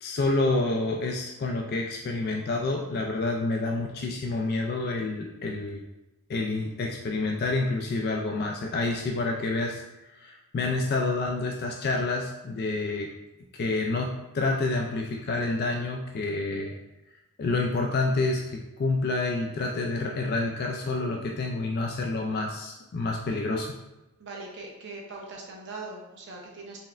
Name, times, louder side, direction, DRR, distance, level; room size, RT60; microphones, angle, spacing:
voice 1, 0.0-5.8 6.3-13.1 13.5-16.7 17.4-23.7, left 3 dB, 45° left, 1 dB, 0.3 m, -28 dB
voice 2, 24.2-26.8, right 3 dB, 50° right, -1 dB, 0.7 m, -41 dB
4.1 x 3.3 x 2.4 m, 1.0 s
head